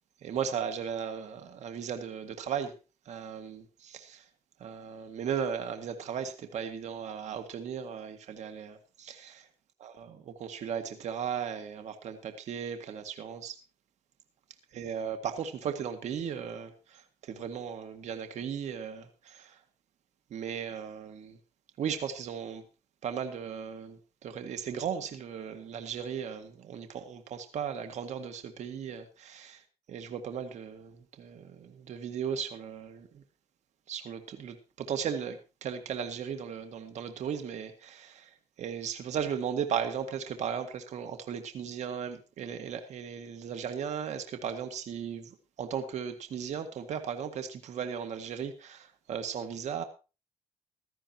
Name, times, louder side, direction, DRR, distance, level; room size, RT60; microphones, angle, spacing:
voice 1, 0.2-2.8 3.1-4.2 4.6-9.5 9.8-13.6 14.7-19.6 20.3-21.4 21.8-22.6 23.0-29.6 29.9-33.2 33.9-38.3 38.6-49.8, right 7 dB, 75° right, 1.8 m, -36 dB
16.0 x 13.5 x 2.9 m
cardioid pair, 100°, 12 cm